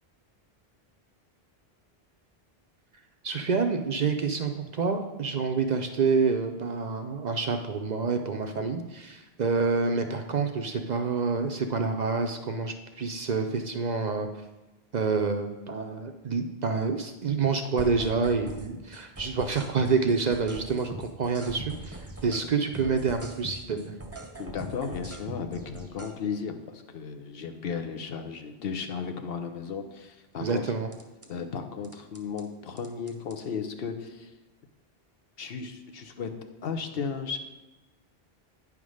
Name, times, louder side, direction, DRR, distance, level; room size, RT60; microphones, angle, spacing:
voice 1, 3.2-14.3 14.9-24.0 30.4-30.9, right 4 dB, 50° right, 5 dB, 0.6 m, -28 dB
sound 1, 17.8-18.7 18.9-22.5 22.7-26.1 30.9-31.3 31.8-32.4 32.8-33.4, right 1 dB, 15° right, 0.8 m, -41 dB
voice 2, 24.4-30.8 31.3-34.3 35.4-36.3 36.6-37.4, left 6 dB, 70° left, 6 dB, 0.9 m, -35 dB
9.4 x 3.6 x 6.2 m, 1.1 s
omnidirectional pair, 1.1 m